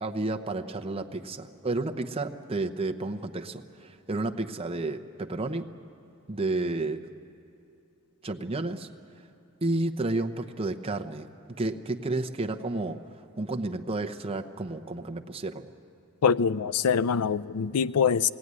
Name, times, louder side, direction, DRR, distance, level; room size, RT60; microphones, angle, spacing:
voice 1, 0.0-5.7 6.3-7.0 8.2-8.9 9.6-11.3 11.6-13.0 13.4-15.7, right 2 dB, 25° right, 5 dB, 0.8 m, -31 dB
voice 2, 16.2-18.3, left 6 dB, 80° left, 17 dB, 0.4 m, -24 dB
19.5 x 17.0 x 9.6 m, 2.6 s
head